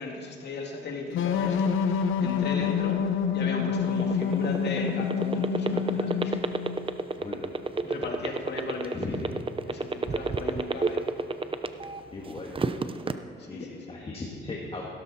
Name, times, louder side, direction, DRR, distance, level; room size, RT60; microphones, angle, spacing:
voice 1, 0.0-3.0 3.3-6.4 7.8-9.3 9.6-11.0 13.4-14.0, left 3 dB, 60° left, 0 dB, 2.5 m, -37 dB
sound 1, 1.1-6.8, left 7 dB, 80° left, 0.9 m, -27 dB
sound 2, 3.8-12.0 12.4-13.1, right 3 dB, 25° right, 0.7 m, -28 dB
voice 2, 7.2-7.5 8.9-9.2 12.1-12.6 13.5-14.8, left 3 dB, 30° left, -2 dB, 1.9 m, -37 dB
16.0 x 13.0 x 4.3 m, 2.3 s
cardioid pair, 90°, 20 cm